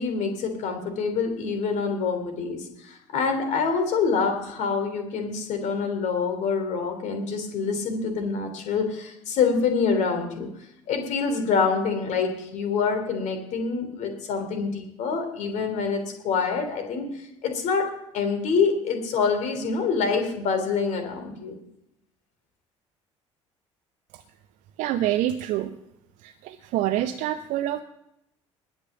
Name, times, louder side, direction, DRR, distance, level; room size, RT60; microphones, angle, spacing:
voice 1, 0.0-10.5 10.9-17.1 17.4-17.8 18.1-21.5, left 5 dB, 50° left, 6 dB, 3.2 m, -26 dB
voice 2, 24.8-25.8 26.2-27.8, right 13 dB, 55° right, 10 dB, 0.7 m, -26 dB
19.5 x 6.6 x 7.3 m, 0.82 s
figure-of-eight pair, 55°, 16 cm